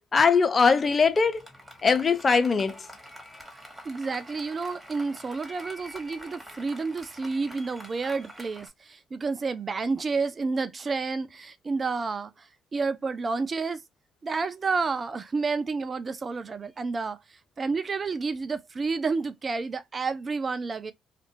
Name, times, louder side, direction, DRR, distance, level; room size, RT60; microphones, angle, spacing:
voice 1, 0.1-1.4 1.8-2.8, left 5 dB, 35° left, 0.7 m, -21 dB
Applause, 0.8-8.7, equal, ahead, 2.0 m, -47 dB
voice 2, 3.8-13.8 14.2-17.2 17.6-20.9, right 4 dB, 40° right, 0.5 m, -30 dB
3.1 x 2.5 x 3.0 m
hypercardioid pair, 55°, 0 cm